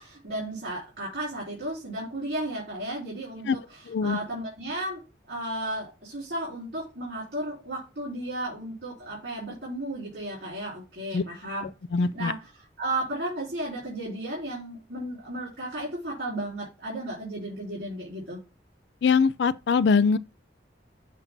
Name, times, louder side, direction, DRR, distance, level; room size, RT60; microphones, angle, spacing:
voice 1, 0.0-11.7 12.0-18.4, right 1 dB, 70° right, 3.6 m, -34 dB
voice 2, 3.9-4.2 11.1-11.2 11.9-12.3 19.0-20.2, left 5 dB, 70° left, 0.4 m, -22 dB
7.4 x 2.6 x 5.8 m
head